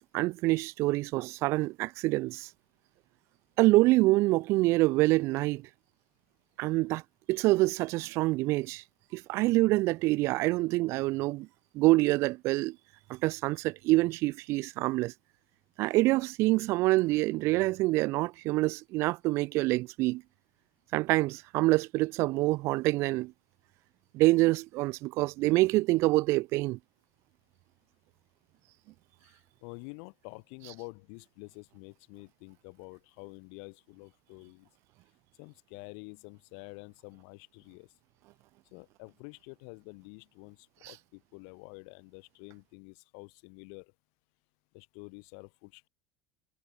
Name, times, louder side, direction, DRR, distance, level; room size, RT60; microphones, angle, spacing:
voice 1, 0.1-2.5 3.6-5.6 6.6-7.0 7.3-8.8 9.1-11.5 11.7-12.8 13.1-15.1 15.8-20.2 20.9-23.3 24.1-26.8, right 20 dB, 45° right, 0.5 m, -26 dB
voice 2, 29.2-34.7 35.4-37.9 38.7-43.9 44.7-45.9, left 40 dB or more, 65° left, 6.3 m, -48 dB
cardioid pair, 160°, 6 cm